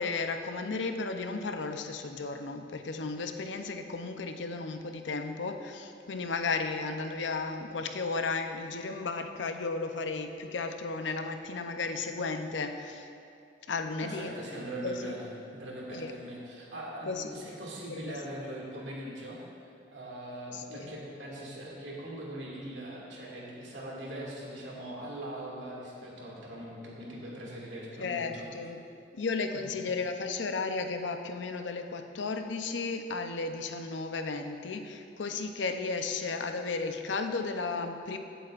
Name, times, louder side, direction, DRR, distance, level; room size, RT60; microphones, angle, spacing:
voice 1, 0.0-13.1 13.7-14.3 14.8-15.2 15.9-16.1 17.1-17.5 17.9-18.4 20.5-20.9 28.0-28.8 29.1-38.2, left 4 dB, 80° left, 6 dB, 0.6 m, -34 dB
voice 2, 14.0-19.4 19.9-28.5 29.5-29.9, right 1 dB, 80° right, -4 dB, 2.2 m, -41 dB
16.5 x 8.0 x 2.5 m, 2.6 s
head